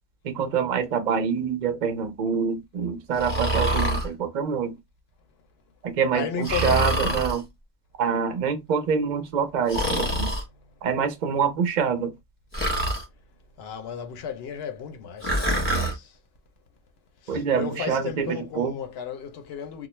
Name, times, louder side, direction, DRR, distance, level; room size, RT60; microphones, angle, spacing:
voice 1, 0.2-4.7 5.8-7.4 8.0-10.3 10.8-12.1 17.3-18.7, right 6 dB, 50° right, 0.5 m, -26 dB
Breathing, 3.2-4.1 6.4-7.4 9.7-10.4 12.5-13.0 15.2-15.9, right 1 dB, 10° left, 0.7 m, -25 dB
voice 2, 6.1-7.1 13.6-16.2 17.2-19.9, left 8 dB, 60° left, 0.7 m, -34 dB
2.4 x 2.0 x 3.0 m
omnidirectional pair, 1.4 m